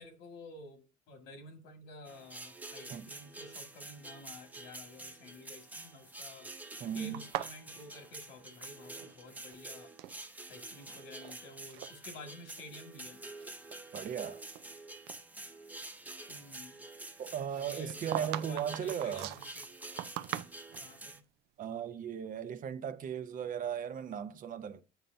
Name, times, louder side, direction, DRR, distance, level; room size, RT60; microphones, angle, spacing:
voice 1, 0.0-6.5 6.9-9.9 10.5-13.2 16.3-16.8 17.5-19.7 20.8-21.2, left 2 dB, 90° left, 1.9 m, -51 dB
sound 1, 2.0-21.2, right 2 dB, 10° right, 0.7 m, -48 dB
voice 2, 6.8-7.2 13.9-14.5 17.2-19.3 21.6-24.8, right 8 dB, 55° right, 0.7 m, -37 dB
sound 2, 7.1-9.1 9.4-10.2 10.8-11.4 11.7-11.9 12.6-12.7 13.2-14.7 15.1-15.2 17.5-20.9, right 14 dB, 85° right, 0.4 m, -41 dB
8.0 x 5.5 x 2.6 m
cardioid pair, 110°, 17 cm